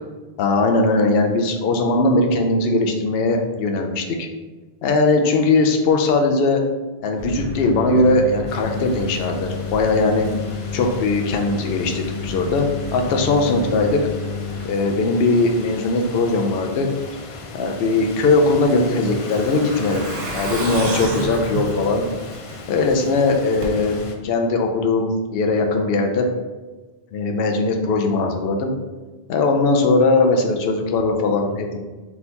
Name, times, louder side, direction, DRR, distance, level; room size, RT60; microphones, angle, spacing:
voice 1, 0.4-4.3 4.8-6.6 7.0-10.3 10.7-14.0 14.6-16.9 17.5-22.0 22.7-26.3 27.1-28.7 29.3-31.8, left 3 dB, 70° left, 3 dB, 0.8 m, -19 dB
sound 1, 7.2-14.7, left 5 dB, 30° right, 1.0 m, -30 dB
sound 2, 8.5-24.2, left 3 dB, 50° left, 0.4 m, -37 dB
Truck, 18.2-22.9 23.2-23.3 23.6-23.7, right 2 dB, 65° right, 1.0 m, -30 dB
4.0 x 2.9 x 3.8 m, 1.2 s
omnidirectional pair, 1.1 m